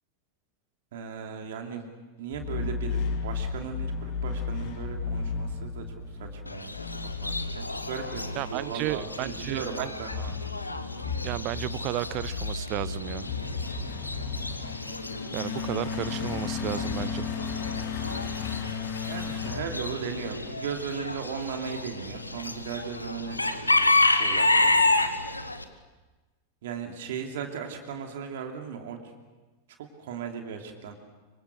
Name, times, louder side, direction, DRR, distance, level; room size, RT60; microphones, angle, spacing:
voice 1, 0.9-1.9 2.2-6.8 7.2-10.3 19.1-25.1 26.6-29.0 30.0-30.9, right 7 dB, 55° right, 3 dB, 2.8 m, -37 dB
sound 1, 2.3-20.5, left 5 dB, 40° left, 2.4 m, -34 dB
Chicken rooster / Bird, 6.5-25.6, left 2 dB, 85° left, 1.4 m, -30 dB
voice 2, 8.4-9.9 11.2-13.3 15.3-17.3, right 17 dB, 40° right, 20 dB, 0.7 m, -33 dB
26.0 x 24.0 x 6.6 m, 1.2 s
figure-of-eight pair, 90°, 0 cm